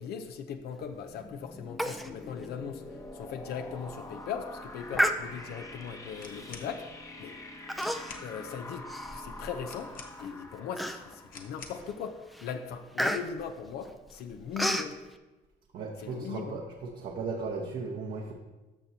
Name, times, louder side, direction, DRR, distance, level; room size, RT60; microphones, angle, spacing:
voice 1, 0.0-6.9 7.2-7.4 8.2-8.8 9.1-15.0 16.0-16.6, left 7 dB, 70° left, 7 dB, 0.6 m, -39 dB
sound 1, 0.9-12.5, left 2 dB, 15° left, 0.9 m, -46 dB
Human voice, 1.8-2.1 2.4-2.5 3.0-3.2 3.7-4.0 4.9-5.7 6.4-6.7 7.7-8.3 8.7-9.7 10.2-10.3 10.8-11.3 11.8-12.0 12.3-14.9, equal, ahead, 0.4 m, -31 dB
sound 2, 6.1-6.7 7.4-7.5 7.7-8.3 9.7-10.4 11.3-11.9, left 5 dB, 55° left, 1.0 m, -47 dB
voice 2, 15.7-16.6 17.0-18.3, right 4 dB, 60° right, 0 dB, 1.0 m, -36 dB
13.5 x 6.0 x 2.8 m, 1.1 s
cardioid pair, 110°, 17 cm